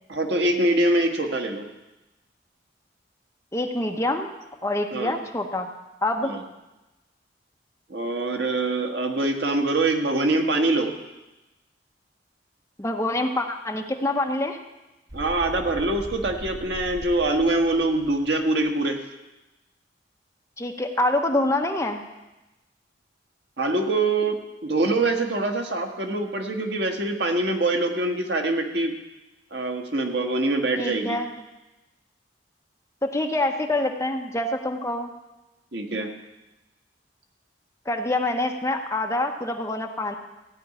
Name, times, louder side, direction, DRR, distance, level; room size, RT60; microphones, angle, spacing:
voice 1, 0.1-1.6 4.9-5.2 6.2-6.4 7.9-10.9 15.1-19.0 23.6-28.9 29.5-31.2 35.7-36.1, right 2 dB, 65° right, 3 dB, 1.5 m, -24 dB
voice 2, 3.5-4.3 4.6-5.7 6.0-6.3 12.8-14.6 20.6-22.0 30.8-31.3 33.0-35.1 37.9-40.1, left 1 dB, 15° left, 3 dB, 0.9 m, -26 dB
sound 1, 15.1-18.7, equal, 20° right, 0.8 m, -40 dB
15.5 x 5.4 x 9.6 m, 1.0 s
head